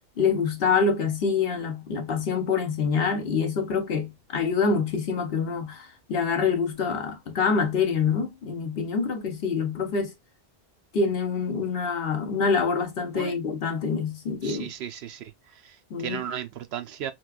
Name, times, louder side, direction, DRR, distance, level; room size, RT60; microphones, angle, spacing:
voice 1, 0.2-10.1 10.9-14.7 15.9-16.2, left 5 dB, 70° left, 1.0 m, -26 dB
voice 2, 14.4-15.3 15.6-17.1, right 9 dB, 85° right, 0.8 m, -35 dB
4.1 x 2.2 x 2.3 m
omnidirectional pair, 1.1 m